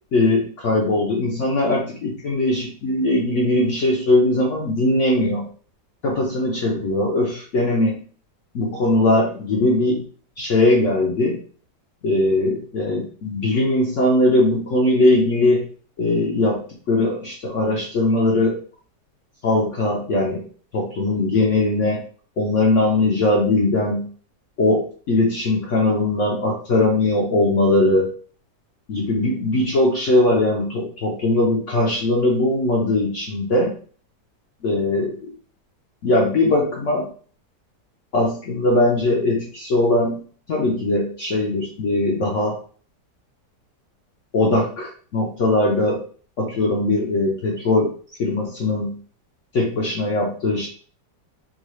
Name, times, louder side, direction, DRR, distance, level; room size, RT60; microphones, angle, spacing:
voice 1, 0.1-5.4 6.0-8.0 8.5-10.0 10.4-11.4 12.0-15.6 16.0-16.6 16.9-18.6 19.4-20.4 20.7-22.0 22.4-24.1 24.6-28.1 28.9-33.7 34.6-35.1 36.0-37.1 38.1-40.2 40.5-42.6 44.3-46.0 46.4-47.9 48.2-48.9 49.5-50.7, left 2 dB, 60° left, -2 dB, 0.8 m, -20 dB
3.8 x 2.3 x 3.1 m, 0.43 s
omnidirectional pair, 1.8 m